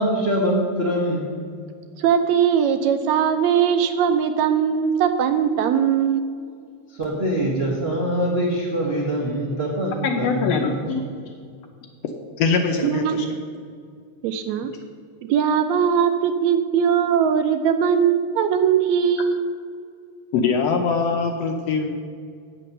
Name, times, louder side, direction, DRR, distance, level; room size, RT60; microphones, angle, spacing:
voice 1, 0.0-1.5 6.9-10.6, equal, 55° right, -4 dB, 0.6 m, -24 dB
voice 2, 2.0-6.2 12.8-13.3 14.2-14.7 15.3-19.5, right 8 dB, 80° right, 8 dB, 1.7 m, -20 dB
voice 3, 10.0-11.0 12.4-13.3 20.3-21.9, left 5 dB, 75° left, 4 dB, 1.6 m, -22 dB
8.6 x 7.6 x 6.5 m, 2.2 s
omnidirectional pair, 3.4 m